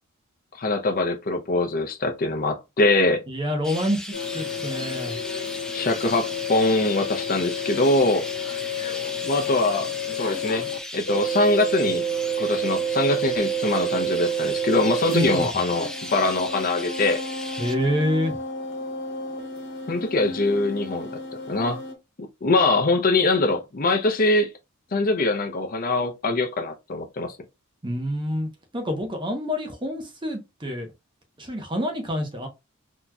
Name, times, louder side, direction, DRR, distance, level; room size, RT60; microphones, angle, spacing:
voice 1, 0.6-3.2 5.7-8.3 9.2-12.0 12.4-17.2 19.9-21.1 21.5-21.8 22.4-24.5 24.9-27.3, left 2 dB, 45° left, 0.6 m, -23 dB
voice 2, 3.3-4.0 4.3-5.2 15.1-15.5 17.6-18.4 27.8-28.5 28.7-30.9 31.4-32.5, equal, 25° right, 0.8 m, -27 dB
Chirp tweet, 3.6-17.7, left 1 dB, 5° left, 0.3 m, -37 dB
sound 1, 4.1-10.8 11.1-15.4 15.7-21.9, right 2 dB, 60° left, 1.2 m, -30 dB
4.0 x 2.9 x 2.3 m
head